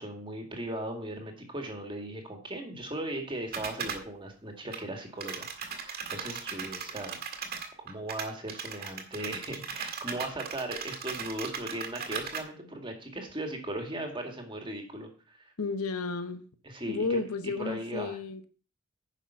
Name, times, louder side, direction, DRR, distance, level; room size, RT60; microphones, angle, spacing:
voice 1, 0.0-7.2 7.8-15.5 16.6-18.2, right 1 dB, 20° right, 1.9 m, -38 dB
sound 1, 3.5-4.0 4.7-4.8 5.2-12.4, right 6 dB, 45° right, 1.9 m, -37 dB
voice 2, 15.6-16.5 16.8-18.4, left 3 dB, 85° left, 1.1 m, -32 dB
10.0 x 6.1 x 5.6 m
head